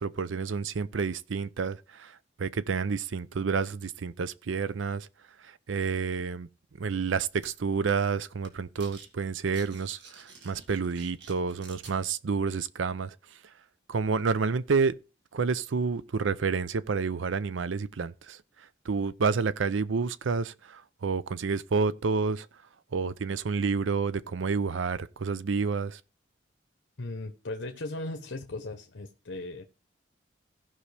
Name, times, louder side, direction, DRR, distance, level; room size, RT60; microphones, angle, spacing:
voice 1, 0.0-5.1 5.4-6.5 6.8-13.4 13.9-15.0 15.3-22.5 22.9-26.0, right 5 dB, 90° right, 0.5 m, -29 dB
sound 1, 7.4-7.5 7.9-8.1 8.4-9.1 9.4-12.0, right 4 dB, 70° right, 1.8 m, -50 dB
voice 2, 27.0-29.6, left 2 dB, 75° left, 0.9 m, -37 dB
16.5 x 5.5 x 3.3 m
head